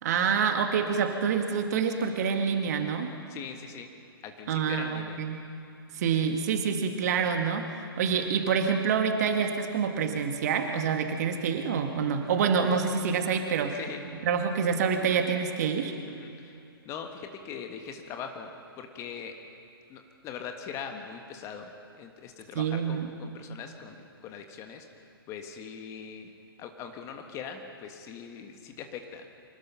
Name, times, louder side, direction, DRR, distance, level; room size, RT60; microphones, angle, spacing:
voice 1, 0.0-3.2 4.5-5.4 5.9-13.8 14.2-15.9 22.6-23.1, right 6 dB, 45° right, 5 dB, 2.0 m, -27 dB
voice 2, 3.3-3.9 4.2-5.2 13.7-14.0 16.1-19.3 19.9-24.9 25.3-26.3 26.6-29.3, left 7 dB, 25° left, 5 dB, 1.6 m, -41 dB
24.5 x 19.0 x 5.8 m, 2.5 s
figure-of-eight pair, 120°, 13 cm